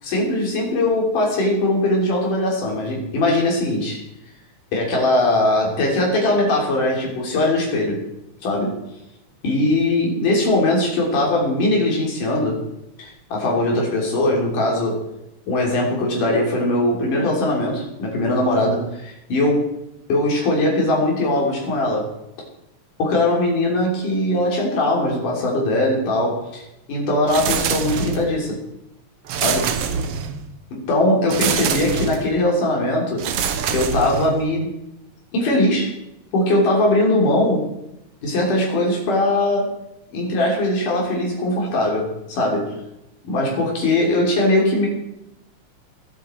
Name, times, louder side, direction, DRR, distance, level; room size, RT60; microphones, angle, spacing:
voice 1, 0.0-4.0 4.7-8.0 8.4-8.8 9.4-12.6 13.0-15.0 15.5-19.7 20.1-22.1 23.0-26.6 26.9-28.6 29.4-29.7 30.7-33.2 33.7-34.7 35.3-35.9 36.3-37.7 38.2-39.7 40.1-42.7 43.2-44.9, left 1 dB, 80° left, -1 dB, 4.9 m, -20 dB
sound 1, 27.3-28.4 29.3-30.5 31.3-32.3 33.2-34.5, right 7 dB, 65° right, 1.6 m, -25 dB
22.0 x 8.8 x 4.5 m, 0.85 s
omnidirectional pair, 3.6 m